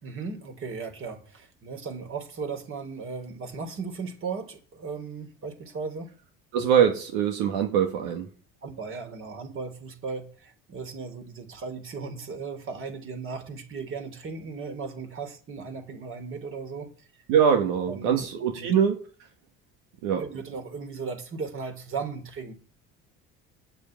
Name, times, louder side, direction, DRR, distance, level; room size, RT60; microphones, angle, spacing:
voice 1, 0.0-6.1 8.6-16.9 17.9-18.7 20.1-22.6, right 4 dB, 45° right, 4.0 m, -36 dB
voice 2, 6.5-8.3 17.3-19.0 20.0-20.2, right 8 dB, 75° right, 1.8 m, -23 dB
8.9 x 8.2 x 9.0 m
supercardioid pair, 85°, 31 cm